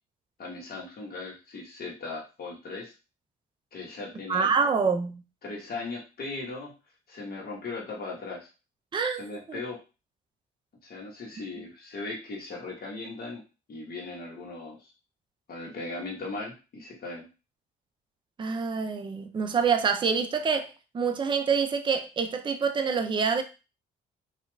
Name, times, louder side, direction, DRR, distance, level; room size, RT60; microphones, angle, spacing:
voice 1, 0.4-2.9 3.7-4.5 5.4-6.7 7.1-8.5 9.1-9.8 10.8-13.4 13.7-14.9 15.5-17.3, left 3 dB, 45° left, 1.2 m, -38 dB
voice 2, 4.3-5.2 8.9-9.2 9.5-9.6 18.4-23.4, right 5 dB, 25° right, 0.4 m, -26 dB
2.8 x 2.4 x 2.3 m
supercardioid pair, 60°, 21 cm